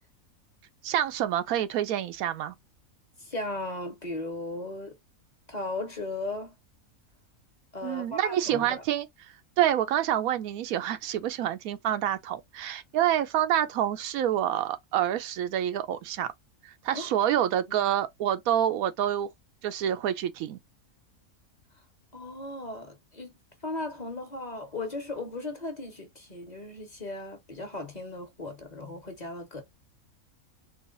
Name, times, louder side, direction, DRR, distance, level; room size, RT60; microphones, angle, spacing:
voice 1, 0.8-2.5 7.8-9.1 9.6-16.3 16.6-19.3 19.6-20.6, right 11 dB, 90° right, 1.1 m, -27 dB
voice 2, 3.2-4.9 5.5-6.5 7.7-8.8 16.9-17.1 17.7-17.9 22.1-23.3 23.6-29.6, left 2 dB, 35° left, 1.1 m, -37 dB
3.9 x 2.0 x 3.8 m
omnidirectional pair, 1.5 m